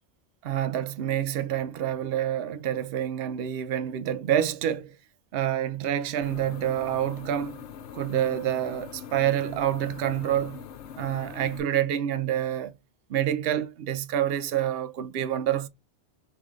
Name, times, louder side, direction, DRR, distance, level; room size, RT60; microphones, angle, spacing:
voice 1, 0.4-4.9 5.3-7.7 7.9-10.6 10.9-12.7 13.1-15.7, right 10 dB, 65° right, 0.8 m, -27 dB
sound 1, 6.2-11.6, left 8 dB, 85° left, 0.9 m, -43 dB
3.6 x 3.4 x 3.0 m
omnidirectional pair, 1.1 m